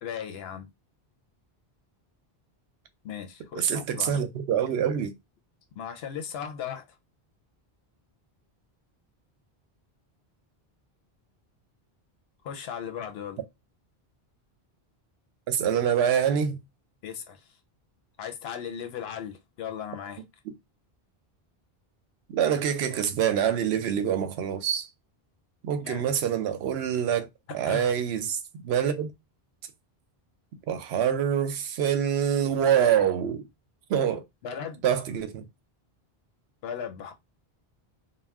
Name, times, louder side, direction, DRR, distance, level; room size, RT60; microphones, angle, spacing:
voice 1, 0.0-0.7 3.0-4.2 5.8-6.9 12.4-13.4 17.0-17.6 18.2-20.2 25.8-26.1 27.5-27.9 34.4-34.8 36.6-37.1, left 8 dB, 80° left, 0.8 m, -37 dB
voice 2, 3.6-5.1 15.5-16.6 22.3-24.9 25.6-27.3 27.5-29.1 30.7-33.4 33.9-34.2 34.8-35.4, right 9 dB, 90° right, 0.8 m, -25 dB
2.4 x 2.1 x 3.4 m
omnidirectional pair, 1.0 m